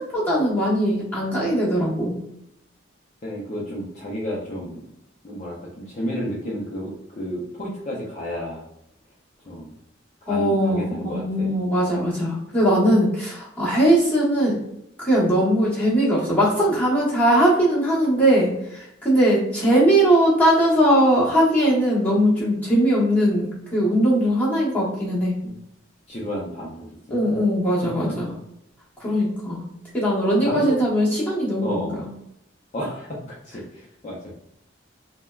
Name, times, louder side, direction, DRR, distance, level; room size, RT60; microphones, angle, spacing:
voice 1, 0.0-2.2 10.3-14.6 15.0-25.3 27.1-28.3 29.0-29.6 29.9-31.9, right 1 dB, 10° left, -7 dB, 0.9 m, -20 dB
voice 2, 3.2-4.8 5.2-8.6 9.5-9.7 10.2-11.6 25.4-25.6 26.1-27.2 28.1-28.2 30.4-30.8 31.6-32.0 32.7-34.3, equal, 35° left, -5 dB, 0.5 m, -31 dB
3.3 x 2.1 x 2.3 m, 0.79 s
head